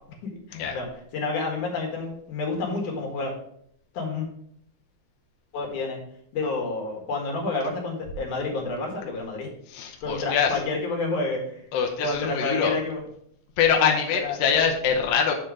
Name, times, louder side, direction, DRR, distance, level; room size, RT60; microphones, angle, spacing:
voice 1, 0.2-0.9 1.1-3.3 3.9-4.3 5.5-6.0 6.3-9.5 10.0-11.6 12.0-13.0 13.7-14.4, left 3 dB, 85° left, 1 dB, 3.2 m, -29 dB
voice 2, 9.7-10.5 11.7-12.7 13.6-15.3, left 7 dB, 70° left, 2 dB, 1.8 m, -23 dB
7.6 x 4.5 x 4.9 m, 0.68 s
omnidirectional pair, 3.4 m